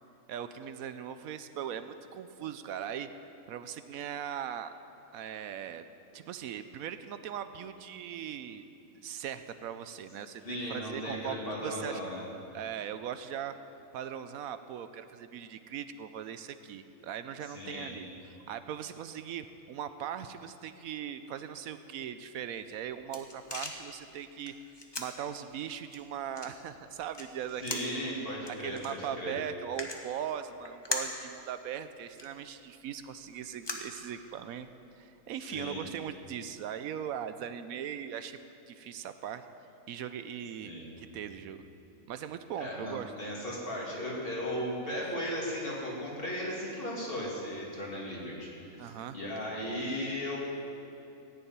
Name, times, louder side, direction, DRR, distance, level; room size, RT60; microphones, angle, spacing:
voice 1, 0.3-3.1 3.5-4.7 5.1-5.8 6.1-8.7 8.9-12.2 12.5-13.5 13.9-18.1 18.5-24.5 25.0-28.0 28.5-34.7 34.9-39.4 39.9-41.6 42.1-43.1 48.8-49.2, right 9 dB, 80° right, 11 dB, 1.0 m, -39 dB
voice 2, 10.4-12.2 17.5-17.9 27.6-29.3 35.5-35.8 40.6-40.9 42.6-48.5 48.8-50.4, equal, 40° left, -4 dB, 2.9 m, -36 dB
sound 1, 22.6-34.6, left 2 dB, 20° left, 0.9 m, -43 dB
15.0 x 7.0 x 9.3 m, 2.8 s
omnidirectional pair, 1.5 m